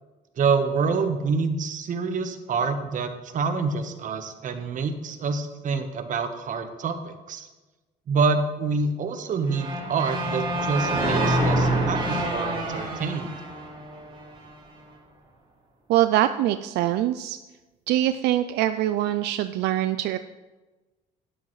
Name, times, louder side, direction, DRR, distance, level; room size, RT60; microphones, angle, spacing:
voice 1, 0.4-7.5 8.1-13.3, right 4 dB, 50° right, 7 dB, 1.2 m, -27 dB
sound 1, 9.5-14.5, right 1 dB, 30° right, 3.6 m, -26 dB
voice 2, 15.9-17.4 17.9-20.2, right 13 dB, 80° right, 10 dB, 0.4 m, -23 dB
12.0 x 10.0 x 3.2 m, 1.2 s
cardioid pair, 110°, 17 cm